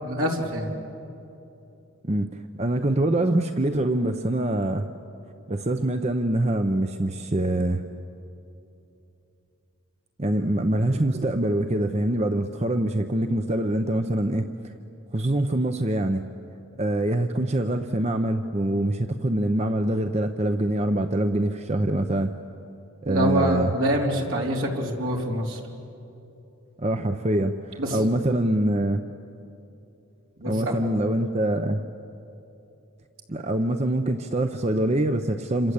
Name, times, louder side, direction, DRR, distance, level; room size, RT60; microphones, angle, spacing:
voice 1, 0.0-0.7 23.0-25.6 27.8-28.0 30.4-30.8, equal, 65° right, 0 dB, 3.8 m, -25 dB
voice 2, 2.0-4.9 5.5-7.8 10.2-14.7 15.1-16.2 16.8-22.3 23.0-23.7 26.8-29.0 30.5-31.8 33.3-35.7, right 1 dB, 30° right, 8 dB, 0.7 m, -24 dB
27.5 x 26.0 x 8.3 m, 2.8 s
head